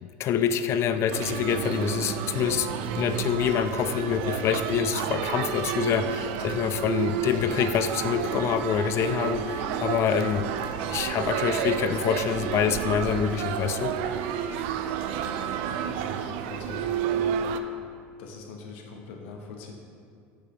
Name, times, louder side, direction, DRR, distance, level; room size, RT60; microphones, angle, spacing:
voice 1, 0.0-10.5 10.9-13.9, left 8 dB, 45° left, 10 dB, 0.3 m, -26 dB
sound 1, 1.1-17.6, right 8 dB, 70° right, 0.3 m, -30 dB
voice 2, 15.8-16.9 18.2-19.7, left 4 dB, 75° left, 2 dB, 0.9 m, -42 dB
6.2 x 6.0 x 3.0 m, 2.3 s
supercardioid pair, 100°, 6 cm